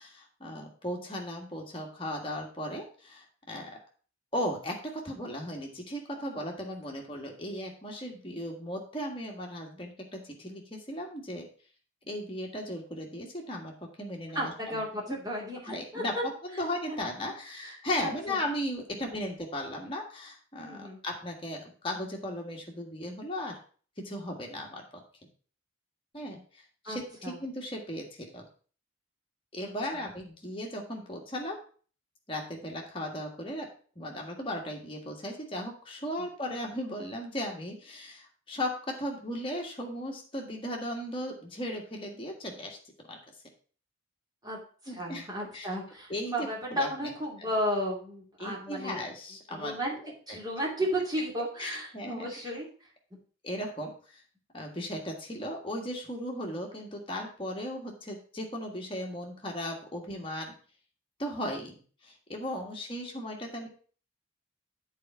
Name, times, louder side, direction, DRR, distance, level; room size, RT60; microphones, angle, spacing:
voice 1, 0.0-3.8 4.3-11.4 12.0-13.7 14.0-14.8 15.1-15.2 15.6-16.1 16.4-23.6 24.0-24.8 26.1-28.4 29.5-31.6 32.3-33.7 33.9-43.2 44.9-45.7 46.1-47.1 47.4-47.5 48.4-50.4 51.6-52.5 53.4-54.2 54.5-60.5 61.2-63.7, left 1 dB, 25° left, 0 dB, 1.6 m, -37 dB
voice 2, 14.3-16.2 16.9-17.0 17.6-17.7 18.0-18.4 20.6-21.0 26.8-27.0 27.2-27.4 29.6-30.0 44.4-44.6 44.8-49.0 49.5-50.0 50.3-52.7, equal, 20° right, -4 dB, 2.6 m, -34 dB
8.5 x 4.6 x 5.5 m, 0.41 s
head